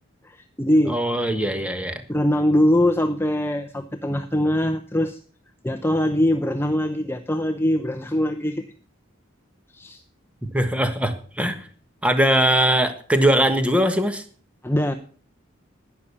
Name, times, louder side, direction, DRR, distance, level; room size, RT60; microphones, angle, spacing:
voice 1, 0.2-1.0 2.1-5.2 5.6-8.7 9.7-10.0 14.6-14.9, left 1 dB, 10° left, 7 dB, 0.7 m, -22 dB
voice 2, 0.9-2.0 10.5-11.7 12.0-14.2, right 1 dB, 5° right, 8 dB, 1.5 m, -21 dB
12.0 x 10.0 x 6.9 m, 0.44 s
head